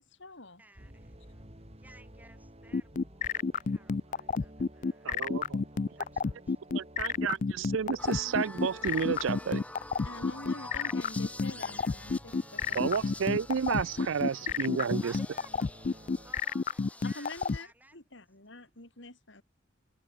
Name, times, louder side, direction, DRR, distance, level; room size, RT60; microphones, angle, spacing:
voice 1, 0.0-0.6 10.0-15.2 17.0-19.4, left 2 dB, 60° left, 4.6 m, -48 dB
voice 2, 0.6-1.5 1.8-3.3 3.5-6.6 10.5-11.6 15.0-15.5 15.9-18.0 18.5-18.7, right 1 dB, 10° right, 6.0 m, -58 dB
sound 1, 0.8-16.3, right 1 dB, 30° right, 5.8 m, -53 dB
sound 2, 2.7-17.6, left 5 dB, 40° left, 0.4 m, -29 dB
voice 3, 5.0-5.6 6.7-9.6 12.7-15.1, right 6 dB, 75° right, 0.5 m, -31 dB
sound 3, 8.0-17.6, left 2 dB, 5° left, 2.7 m, -48 dB
head